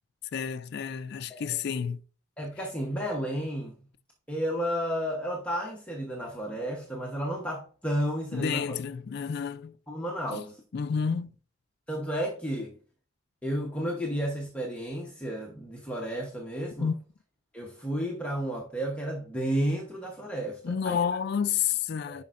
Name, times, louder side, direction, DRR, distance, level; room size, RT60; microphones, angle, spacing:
voice 1, 0.3-2.0 8.3-9.7 10.3-10.4 10.7-11.3 16.8-17.0 20.6-22.2, left 7 dB, 50° left, 0.3 m, -30 dB
voice 2, 2.4-3.7 4.3-8.7 9.9-10.6 11.9-12.7 13.4-16.9 17.5-21.0 22.1-22.2, equal, 5° left, 0.9 m, -32 dB
10.5 x 5.1 x 2.5 m
head